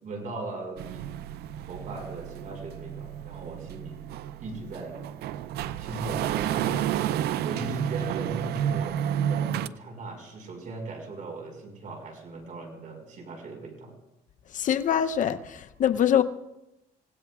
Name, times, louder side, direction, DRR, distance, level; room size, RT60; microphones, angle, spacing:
voice 1, 0.0-1.1 1.6-4.0 4.4-5.0 5.8-7.0 7.4-9.0 9.3-13.9, right 2 dB, 50° right, 5.0 m, -38 dB
sound 1, 0.8-9.7, right 10 dB, 70° right, 0.5 m, -31 dB
voice 2, 14.5-16.2, left 9 dB, 50° left, 0.7 m, -24 dB
28.0 x 17.0 x 2.4 m
cardioid pair, 110°, 17 cm